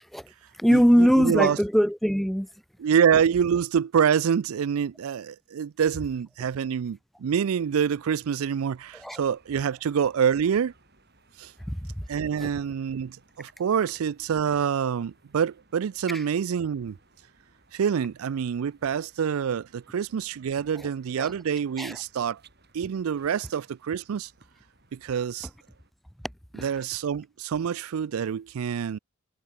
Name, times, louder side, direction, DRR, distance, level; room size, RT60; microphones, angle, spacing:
voice 1, 0.0-2.5 9.0-9.2 11.7-12.0 12.4-12.5 16.1-16.2 20.8-20.9 21.2-21.3 21.8-22.0 26.5-26.7, equal, ahead, 0.6 m, -23 dB
voice 2, 0.7-1.6 2.8-10.7 11.4-11.5 12.1-17.0 17.7-22.4 22.7-24.3 24.9-25.5 26.6-29.0, right 7 dB, 75° right, 0.4 m, -26 dB
sound 1, 7.5-25.9, right 3 dB, 45° right, 7.1 m, -61 dB
head